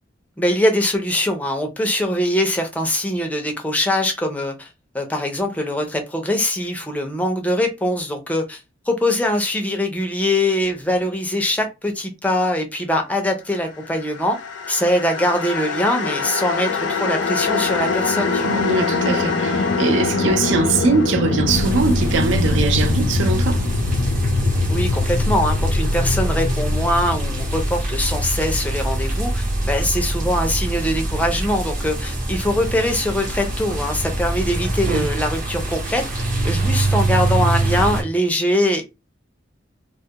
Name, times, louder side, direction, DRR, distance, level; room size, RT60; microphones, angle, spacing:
voice 1, 0.4-4.7 4.9-8.6 8.9-14.4 14.7-18.6 24.7-38.9, left 1 dB, 10° left, 0.4 m, -22 dB
sound 1, 14.2-29.4, left 3 dB, 80° left, 0.4 m, -23 dB
voice 2, 18.4-23.6 34.9-35.1, right 4 dB, 85° right, 0.4 m, -21 dB
sound 2, 21.5-38.0, right 1 dB, 45° right, 0.7 m, -24 dB
2.2 x 2.1 x 2.7 m
head